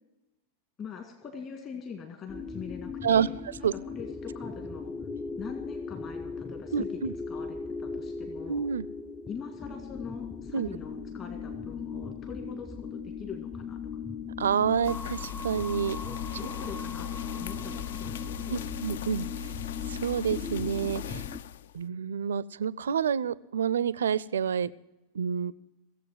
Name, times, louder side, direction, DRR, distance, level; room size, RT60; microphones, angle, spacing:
voice 1, 0.8-4.9 5.4-7.0 7.3-8.6 9.3-13.8 16.3-18.6, left 6 dB, 30° left, 4 dB, 1.8 m, -43 dB
sound 1, 2.3-21.4, left 5 dB, 10° left, 0.5 m, -38 dB
voice 2, 6.7-7.1 8.5-8.9 10.5-10.7 14.4-16.0 18.5-19.3 19.9-21.2 21.7-24.7 25.1-25.5, right 7 dB, 65° right, 21 dB, 0.4 m, -28 dB
sound 2, 14.8-21.8, left 10 dB, 60° left, 0.4 m, -39 dB
17.0 x 7.7 x 7.6 m, 1.0 s
figure-of-eight pair, 90°, 0 cm